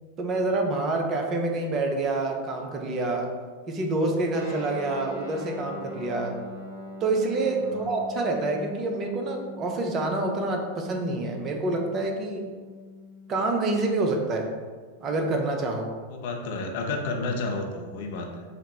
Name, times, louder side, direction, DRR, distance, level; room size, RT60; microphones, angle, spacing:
voice 1, 0.2-3.3 3.7-6.4 7.0-12.5 13.3-14.5 15.0-15.9, right 2 dB, 30° right, 2 dB, 0.5 m, -27 dB
Guitar, 4.3-14.2, left 2 dB, 55° right, 1.4 m, -42 dB
voice 2, 16.1-18.4, left 3 dB, 50° left, 3 dB, 0.5 m, -31 dB
4.0 x 2.0 x 4.1 m, 1.5 s
figure-of-eight pair, 90°, 0 cm